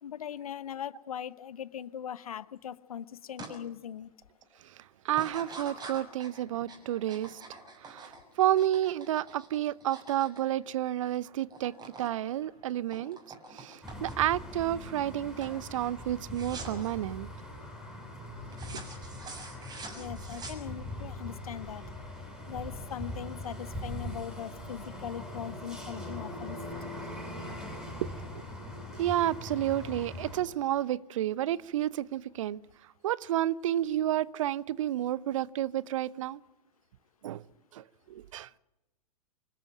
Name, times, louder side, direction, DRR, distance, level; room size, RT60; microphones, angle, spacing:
voice 1, 0.0-4.1 19.9-21.8 22.5-26.6, left 9 dB, 65° left, 1.1 m, -40 dB
sound 1, 3.4-3.6 4.0-4.4 5.1-11.2 11.4-12.1 12.4-14.4 14.9-15.2 15.4-15.6 16.3-16.9 18.5-21.0, right 3 dB, 20° right, 6.4 m, -46 dB
voice 2, 4.6-7.4 7.8-11.7 12.0-13.2 13.5-17.3 19.9-20.1 28.0-28.1 29.0-32.6 33.0-36.4 37.2-37.4 37.7-38.5, right 12 dB, 55° right, 0.9 m, -30 dB
sound 2, 13.8-30.4, left 1 dB, 5° right, 7.8 m, -41 dB
26.0 x 13.5 x 9.3 m
figure-of-eight pair, 105°, 20 cm